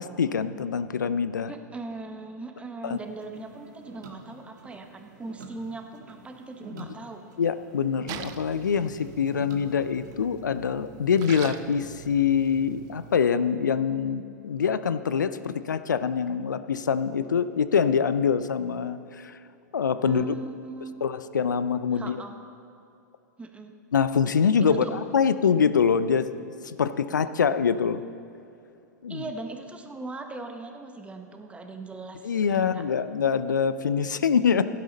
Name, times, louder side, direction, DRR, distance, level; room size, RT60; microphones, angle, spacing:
voice 1, 0.0-1.5 2.8-3.0 6.7-6.9 7.4-19.4 19.7-20.2 21.0-22.2 23.9-28.0 29.0-29.2 32.2-34.6, left 6 dB, 80° left, 13 dB, 0.5 m, -25 dB
voice 2, 1.5-7.2 20.0-21.0 21.9-22.4 23.4-23.7 24.6-24.9 29.1-32.2 32.5-32.8, right 3 dB, 10° right, 5 dB, 1.1 m, -39 dB
sound 1, 2.9-13.5, right 3 dB, 70° right, 1.7 m, -49 dB
Splash splatter, 8.1-13.2, right 10 dB, 40° right, 0.6 m, -43 dB
16.0 x 11.0 x 4.0 m, 2.6 s
hypercardioid pair, 105°, 10 cm